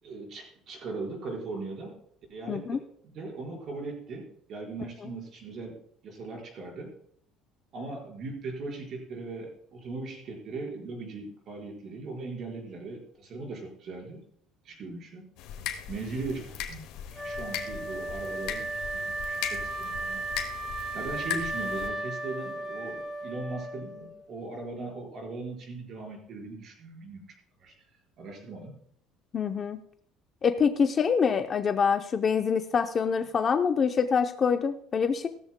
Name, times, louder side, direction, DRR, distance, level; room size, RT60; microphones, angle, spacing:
voice 1, 0.0-2.0 2.3-5.7 6.0-6.9 7.7-14.2 14.6-15.3 15.9-20.2 20.9-27.3 27.6-27.7 28.2-28.8, right 3 dB, 40° right, 1 dB, 4.7 m, -39 dB
voice 2, 2.5-2.8 29.3-29.8 30.4-35.3, left 6 dB, 25° left, 7 dB, 0.6 m, -25 dB
sound 1, 15.4-21.9, left 10 dB, 70° left, 1.9 m, -38 dB
Wind instrument woodwind instrument, 17.1-24.2, right 2 dB, 5° right, 3.3 m, -35 dB
17.5 x 13.5 x 2.2 m, 0.65 s
cardioid pair, 170°, 0 cm